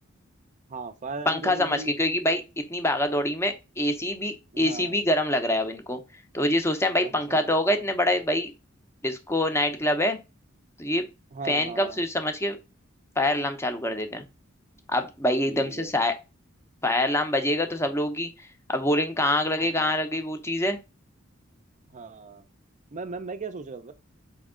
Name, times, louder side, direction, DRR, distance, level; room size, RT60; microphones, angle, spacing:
voice 1, 0.7-2.0 4.5-5.0 7.0-7.8 11.3-12.0 15.4-15.9 19.6-20.0 21.9-22.4 22.9-23.9, right 3 dB, 35° right, 0.5 m, -38 dB
voice 2, 1.3-6.0 6.3-8.5 9.0-10.2 10.8-11.1 11.4-12.6 13.2-14.2 14.9-16.1 16.8-18.3 18.7-20.8, left 1 dB, 15° left, 0.6 m, -25 dB
4.4 x 3.1 x 3.6 m
head